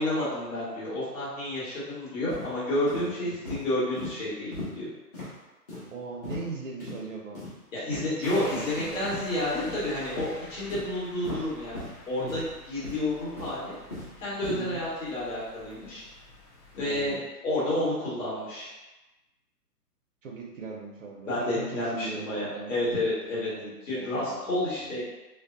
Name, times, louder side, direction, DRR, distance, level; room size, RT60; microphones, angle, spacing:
voice 1, 0.0-4.9 7.7-11.8 12.1-12.4 12.7-13.7 14.2-16.0 16.7-17.2 17.4-18.7 21.2-23.5 23.9-25.0, left 1 dB, 55° left, -8 dB, 1.5 m, -30 dB
sound 1, 2.3-2.5 2.9-3.0 3.4-3.6 4.0-4.1 4.5-4.7 5.1-5.3 5.7-5.9 6.2-6.5 6.8-7.0 7.3-7.5 7.9-8.1 8.5-8.6 9.0-9.2 9.6-9.8 10.2-10.3 10.7-10.8 11.2-11.4 11.7-11.9 12.3-12.5 12.8-13.0 13.4-14.1 14.4-14.6, left 1 dB, 25° left, 0.8 m, -37 dB
voice 2, 5.9-7.5 8.3-9.1 12.2-12.5 14.5-14.8 16.8-17.2 20.2-25.0, right 4 dB, 55° right, -1 dB, 0.5 m, -40 dB
sound 2, 8.2-17.2, left 2 dB, 70° left, 0.9 m, -46 dB
2.6 x 2.1 x 2.5 m, 1.1 s
hypercardioid pair, 150°, 47 cm